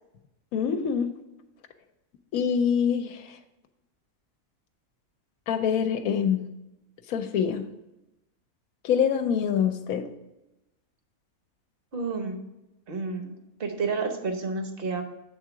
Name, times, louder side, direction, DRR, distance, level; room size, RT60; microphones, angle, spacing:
voice 1, 0.5-1.1 2.3-3.3 5.5-6.4 7.1-7.6 8.8-10.1, left 7 dB, 80° left, 7 dB, 1.0 m, -25 dB
voice 2, 11.9-12.4 12.9-13.3 13.6-15.0, right 4 dB, 45° right, 5 dB, 0.9 m, -30 dB
7.8 x 3.7 x 5.9 m, 0.95 s
omnidirectional pair, 1.5 m